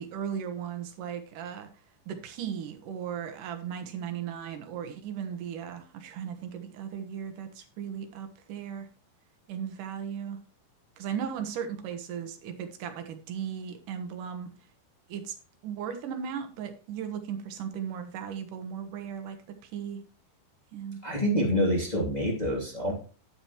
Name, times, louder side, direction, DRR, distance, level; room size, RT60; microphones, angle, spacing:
voice 1, 0.0-1.7 2.1-8.9 9.5-10.4 11.0-14.5 15.1-15.3 15.6-19.4 19.7-20.0 20.7-21.0, right 8 dB, 65° right, 7 dB, 2.3 m, -36 dB
voice 2, 21.0-22.9, equal, 15° left, -2 dB, 2.0 m, -26 dB
10.5 x 8.8 x 3.1 m, 0.36 s
omnidirectional pair, 5.2 m